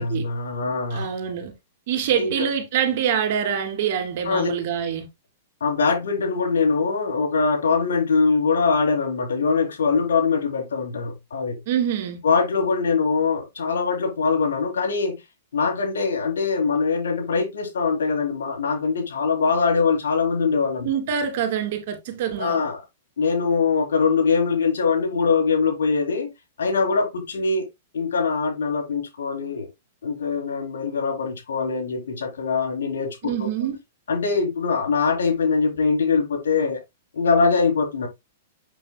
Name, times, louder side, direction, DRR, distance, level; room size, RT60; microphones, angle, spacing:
voice 1, 0.0-1.1 2.2-2.5 4.2-4.5 5.6-11.6 12.2-15.2 15.5-20.9 22.4-22.8 23.2-26.3 26.6-27.7 27.9-29.7 30.0-33.5 34.1-36.8 37.1-38.1, left 4 dB, 85° left, 3.7 m, -22 dB
voice 2, 0.9-1.5 1.9-5.1 11.7-12.2 20.8-22.6 33.2-33.8, right 8 dB, 60° right, 2.9 m, -25 dB
8.0 x 6.7 x 2.2 m
hypercardioid pair, 130°, 0 cm